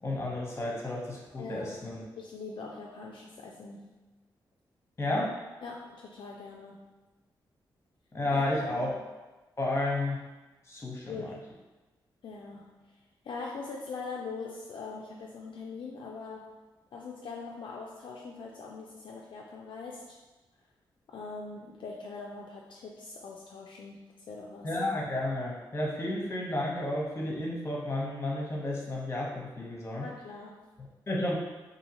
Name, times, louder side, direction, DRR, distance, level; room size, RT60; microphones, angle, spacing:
voice 1, 0.0-2.0 5.0-5.3 8.1-8.9 9.6-10.2 10.7-11.2 24.6-30.1 30.8-31.3, left 1 dB, 30° left, -3 dB, 0.9 m, -32 dB
voice 2, 1.4-1.8 2.2-3.9 5.6-6.9 8.3-9.0 11.0-11.5 12.2-12.9 13.2-16.6 16.9-20.2 21.1-24.7 30.0-30.7, left 4 dB, 65° left, -2 dB, 0.3 m, -42 dB
2.6 x 2.4 x 2.8 m, 1.2 s
supercardioid pair, 50°, 9 cm